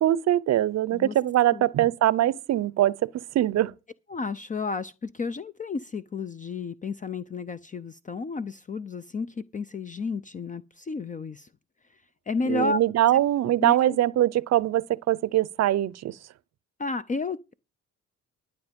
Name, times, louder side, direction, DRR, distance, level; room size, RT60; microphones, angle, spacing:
voice 1, 0.0-3.1 3.3-3.7 12.4-16.1, right 13 dB, 60° right, 0.6 m, -22 dB
voice 2, 4.1-9.3 9.5-11.5 12.3-12.8 13.6-14.0 16.8-17.5, left 4 dB, 25° left, 0.5 m, -32 dB
12.0 x 8.1 x 5.1 m
cardioid pair, 90°, 30 cm